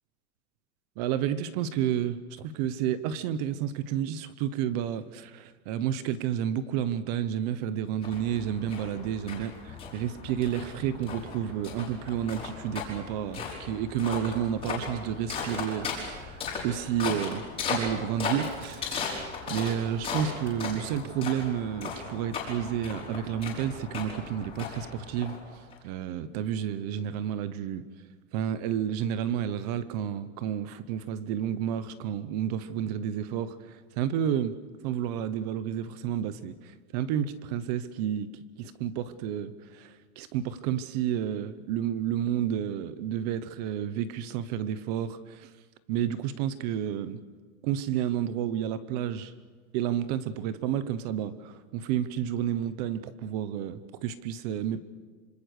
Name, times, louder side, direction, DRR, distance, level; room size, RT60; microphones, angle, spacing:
voice 1, 1.0-19.2 19.5-25.4 25.8-27.8 28.3-34.6 34.8-38.3 38.6-45.5 45.9-47.2 47.6-49.3 49.7-54.8, right 9 dB, 30° right, 0.9 m, -31 dB
sound 1, 8.0-25.7, left 5 dB, 15° left, 5.0 m, -37 dB
26.0 x 26.0 x 6.6 m
supercardioid pair, 175°, 43 cm